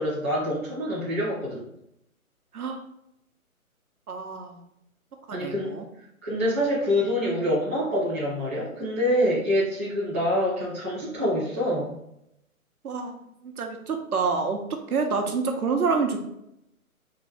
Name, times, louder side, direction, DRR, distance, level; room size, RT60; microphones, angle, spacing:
voice 1, 0.0-1.6 5.3-5.7 6.2-11.9, equal, 10° right, -12 dB, 0.6 m, -26 dB
voice 2, 4.1-4.6 5.3-5.8 12.8-13.2 13.4-16.2, right 4 dB, 90° right, 4 dB, 1.0 m, -27 dB
3.8 x 2.7 x 4.4 m, 0.78 s
hypercardioid pair, 165°, 43 cm